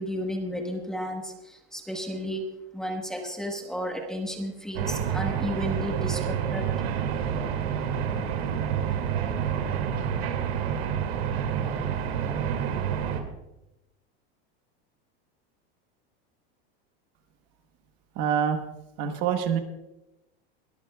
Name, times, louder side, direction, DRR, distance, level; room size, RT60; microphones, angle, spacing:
voice 1, 0.0-2.5 2.7-6.7, equal, ahead, 2 dB, 1.0 m, -33 dB
sound 1, 4.8-13.2, right 8 dB, 85° right, 2.2 m, -28 dB
voice 2, 18.2-18.6 19.0-19.6, right 8 dB, 35° right, 7 dB, 1.0 m, -25 dB
22.0 x 14.0 x 2.3 m, 0.94 s
supercardioid pair, 175°, 30 cm